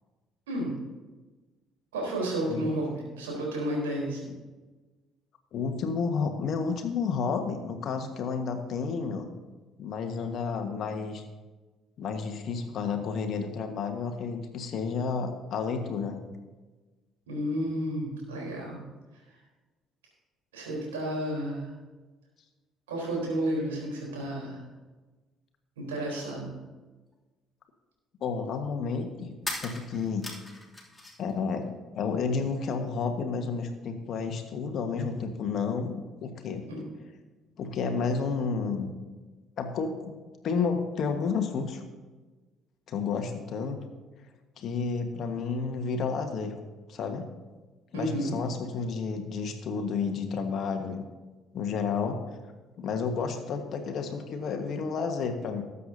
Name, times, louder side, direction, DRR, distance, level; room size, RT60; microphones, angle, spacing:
voice 1, 1.9-4.4 17.3-18.8 20.5-21.7 22.9-24.6 25.8-26.5 36.7-36.8 47.9-48.3, right 1 dB, 80° right, -2 dB, 3.9 m, -31 dB
voice 2, 5.5-9.3 9.8-11.2 12.0-16.2 28.2-29.3 29.6-30.3 31.2-31.6 31.9-36.6 37.6-38.9 39.6-40.2 40.4-41.8 42.9-43.8 44.6-46.5 46.9-47.3 47.9-51.0 51.5-52.4 52.8-55.6, left 5 dB, 50° left, 5 dB, 1.5 m, -31 dB
sound 1, 27.1-27.2 29.4-31.3 31.6-32.5, left 1 dB, 10° left, 2.8 m, -40 dB
19.0 x 8.3 x 2.8 m, 1.2 s
figure-of-eight pair, 50°, 0 cm